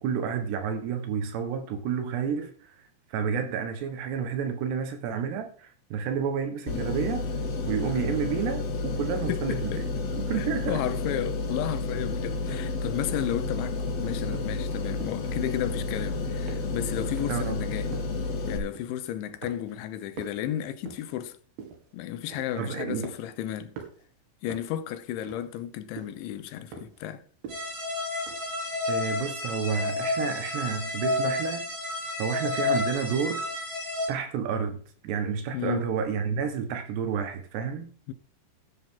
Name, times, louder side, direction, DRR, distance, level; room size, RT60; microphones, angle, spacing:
voice 1, 0.0-2.7 3.1-7.2 7.7-10.8 17.3-17.6 22.6-23.1 28.9-31.7 32.2-33.5 34.1-37.9, right 7 dB, 70° right, 3.5 m, -30 dB
sound 1, 6.7-18.6, left 3 dB, 60° left, 3.8 m, -31 dB
voice 2, 9.3-9.8 10.3-17.9 18.5-21.4 21.9-23.8 24.4-27.2 35.5-35.9 38.1-38.2, left 11 dB, 90° left, 3.4 m, -33 dB
sound 2, 13.5-13.8 14.3-14.6 15.0-15.3 15.7-16.1 16.5-16.9 17.2-17.5 17.9-18.2 18.6-19.1 19.4-19.9 20.1-21.2 21.6-21.9 22.3-22.6 23.0-23.4 23.8-24.0 24.5-24.8 25.3-25.7 26.0-26.2 26.7-27.0 27.4-27.8 28.3-28.4, right 6 dB, 90° right, 4.8 m, -44 dB
sound 3, 27.5-34.1, left 3 dB, 35° right, 7.7 m, -30 dB
13.5 x 11.0 x 3.9 m
omnidirectional pair, 5.2 m